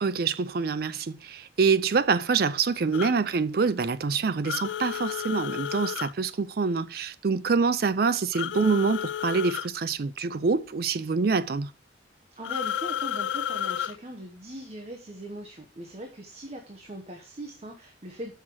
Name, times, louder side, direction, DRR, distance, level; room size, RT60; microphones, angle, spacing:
voice 1, 0.0-11.7, right 5 dB, 55° right, 0.5 m, -26 dB
sound 1, 2.9-3.1 4.4-6.1 8.3-9.7 12.4-14.0, left 9 dB, 85° left, 0.3 m, -31 dB
voice 2, 12.4-18.3, right 1 dB, 35° right, 0.9 m, -40 dB
6.1 x 5.8 x 4.6 m
head